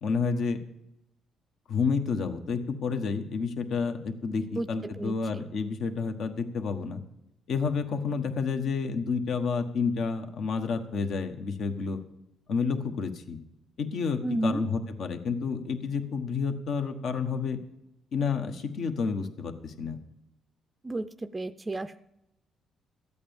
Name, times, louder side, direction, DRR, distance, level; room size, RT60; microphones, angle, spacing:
voice 1, 0.0-0.6 1.7-7.0 7.5-12.0 12.5-13.4 13.8-17.6 18.1-20.0, left 5 dB, 65° left, 6 dB, 1.3 m, -30 dB
voice 2, 5.0-5.4 14.2-14.6 20.8-22.0, right 2 dB, 20° right, 12 dB, 0.5 m, -32 dB
13.5 x 8.6 x 7.1 m, 0.86 s
cardioid pair, 90°, 0 cm